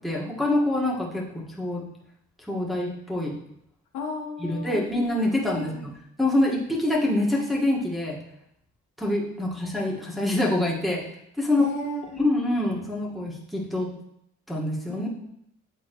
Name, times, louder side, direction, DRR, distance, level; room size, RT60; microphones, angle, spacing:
voice 1, 0.0-1.8 2.5-3.3 4.4-5.7 6.2-8.2 9.0-11.1 11.4-11.7 12.2-13.9 14.5-15.1, left 1 dB, ahead, -5 dB, 1.6 m, -25 dB
voice 2, 3.9-4.9 5.5-5.9 11.6-12.2 14.9-15.3, left 3 dB, 80° left, 0 dB, 1.3 m, -34 dB
8.9 x 4.0 x 3.1 m, 0.76 s
cardioid pair, 90°, 30 cm